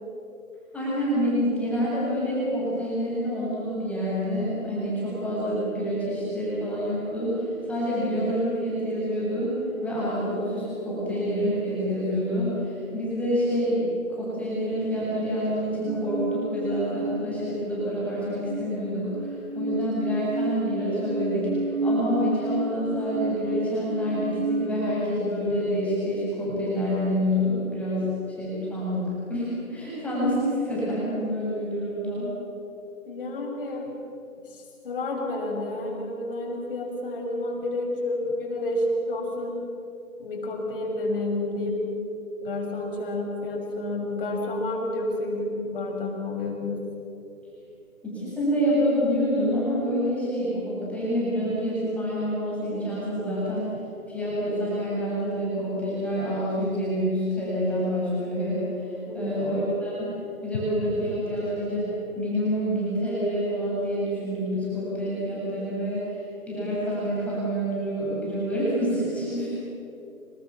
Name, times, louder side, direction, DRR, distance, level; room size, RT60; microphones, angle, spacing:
voice 1, 0.7-32.3 48.0-53.8 54.1-60.1 60.4-69.5, equal, 5° left, -9 dB, 7.4 m, -27 dB
sound 1, 15.9-18.0 18.3-24.7, right 1 dB, 55° right, 5.3 m, -31 dB
voice 2, 33.1-33.9 34.5-39.6 40.2-41.8 42.4-46.8 59.1-59.3, left 2 dB, 40° left, 0 dB, 6.5 m, -30 dB
26.5 x 26.0 x 7.3 m, 2.9 s
figure-of-eight pair, 150°, 43 cm